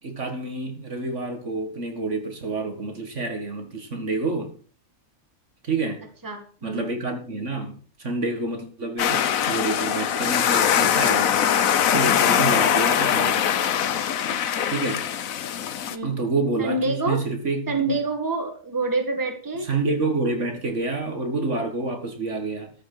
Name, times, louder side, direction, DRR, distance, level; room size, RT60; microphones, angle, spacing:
voice 1, 0.0-4.5 5.6-6.0 6.6-11.4 11.9-13.6 14.7-15.0 16.0-17.6 19.7-22.7, right 3 dB, 55° right, 5 dB, 2.2 m, -28 dB
voice 2, 6.2-6.9 14.3-14.7 15.9-16.2 16.6-17.2 17.7-19.7, right 3 dB, 15° right, 5 dB, 1.8 m, -27 dB
sound 1, 9.0-16.0, left 9 dB, 70° left, 1.2 m, -22 dB
14.0 x 6.4 x 6.1 m, 0.42 s
omnidirectional pair, 1.5 m